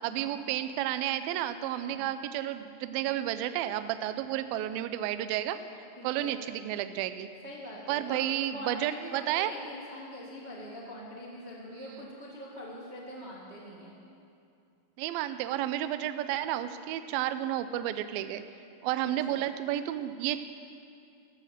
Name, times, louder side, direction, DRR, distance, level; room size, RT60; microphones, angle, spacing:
voice 1, 0.0-5.6 6.0-7.3 7.9-9.5 11.9-12.0 15.0-18.4 18.8-20.4, right 12 dB, 80° right, 11 dB, 2.3 m, -31 dB
voice 2, 6.0-6.3 7.4-14.0 19.3-19.4, equal, 30° right, -4 dB, 1.1 m, -43 dB
15.0 x 14.0 x 6.6 m, 2.5 s
omnidirectional pair, 4.6 m